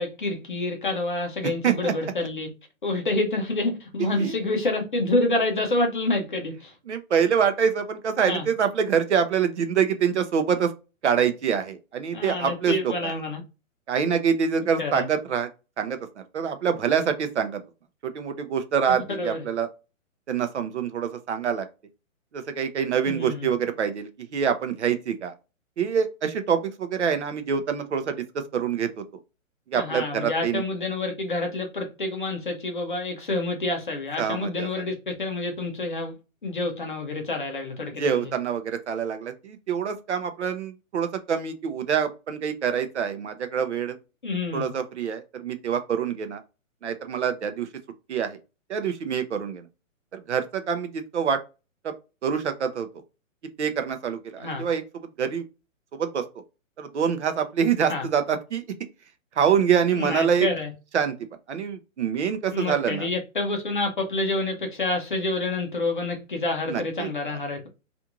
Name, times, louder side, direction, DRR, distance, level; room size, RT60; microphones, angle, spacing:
voice 1, 0.0-2.5 2.8-6.7 8.3-8.5 12.1-13.4 14.8-15.0 18.9-19.5 23.1-23.5 29.7-36.1 36.4-38.2 44.2-44.7 54.4-54.6 57.9-58.1 59.9-60.7 62.5-67.7, left 2 dB, 40° left, 0.6 m, -28 dB
voice 2, 6.9-10.7 11.0-13.1 13.9-15.5 15.8-16.0 16.3-17.6 18.0-19.7 20.3-21.7 22.3-25.3 25.8-28.2 28.5-29.0 29.7-30.6 34.2-34.7 38.0-44.0 44.5-46.4 46.8-47.7 48.1-48.4 48.7-49.7 50.1-51.4 51.8-51.9 52.2-52.9 53.6-54.8 55.2-55.4 55.9-56.2 56.8-58.6 59.4-60.5 60.9-61.1 61.5-63.1 66.7-67.1, right 7 dB, 55° right, 0.6 m, -25 dB
2.5 x 2.3 x 2.9 m
hypercardioid pair, 180°, 41 cm